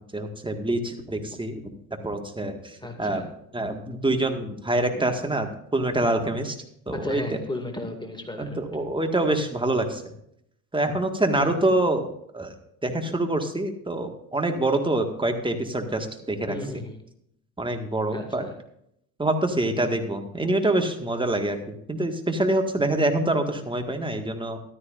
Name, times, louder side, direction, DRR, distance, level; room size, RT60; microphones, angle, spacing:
voice 1, 0.1-1.6 2.0-3.3 3.5-6.6 6.9-7.4 8.4-10.0 10.7-12.5 12.8-16.6 17.6-18.4 19.2-21.6 21.9-24.6, right 1 dB, 10° right, 5 dB, 1.8 m, -26 dB
voice 2, 2.8-3.3 4.9-5.1 6.9-8.6 11.4-11.7 16.5-17.0 18.1-18.5 20.4-20.5 22.8-22.9, left 1 dB, 10° left, 4 dB, 2.3 m, -35 dB
14.5 x 13.0 x 2.6 m, 0.73 s
hypercardioid pair, 70°, 45 cm